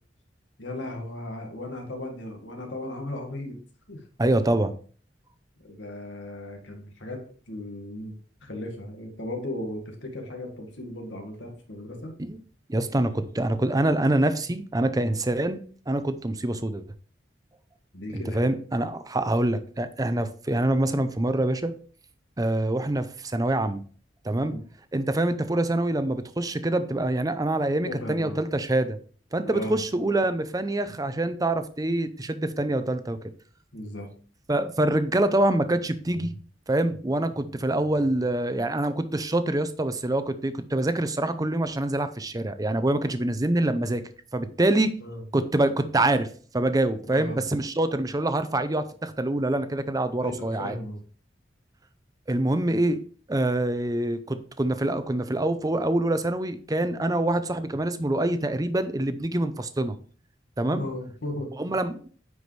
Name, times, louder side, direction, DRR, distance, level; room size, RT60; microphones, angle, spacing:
voice 1, 0.6-3.6 3.9-4.0 5.6-8.1 8.4-12.1 17.9-18.5 24.3-24.6 27.9-28.4 29.4-29.8 33.7-34.1 45.0-45.2 47.1-47.4 50.2-51.0 60.7-61.5, left 1 dB, 90° left, 2 dB, 1.9 m, -36 dB
voice 2, 4.2-4.7 12.2-12.4 12.7-15.6 15.9-16.8 18.1-21.7 22.4-23.8 24.2-24.5 24.9-29.0 29.3-33.2 34.5-36.3 36.7-44.0 44.3-44.9 45.3-50.8 52.3-53.0 53.3-60.0 60.6-60.9 61.6-62.1, right 1 dB, 20° right, 11 dB, 0.6 m, -25 dB
9.3 x 4.9 x 3.3 m, 0.43 s
head